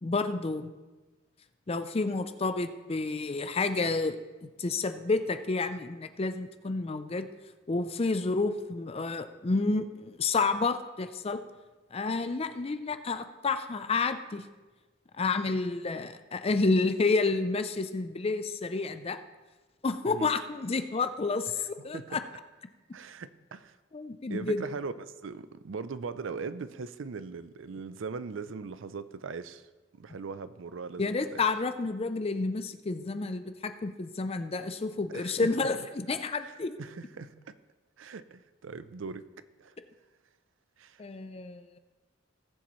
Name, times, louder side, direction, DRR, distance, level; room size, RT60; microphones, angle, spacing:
voice 1, 0.0-0.7 1.7-4.2 4.4-7.3 7.7-11.4 11.9-14.4 15.2-19.2 19.8-22.2 23.9-24.6 31.0-36.8 41.0-41.8, left 3 dB, 30° left, 10 dB, 0.5 m, -30 dB
voice 2, 22.9-23.8 24.3-29.6 30.0-31.5 35.1-35.7 36.4-37.5 38.0-39.2 39.6-39.7 40.8-41.0, right 5 dB, 70° right, 14 dB, 0.5 m, -40 dB
18.0 x 7.3 x 3.1 m, 1.2 s
head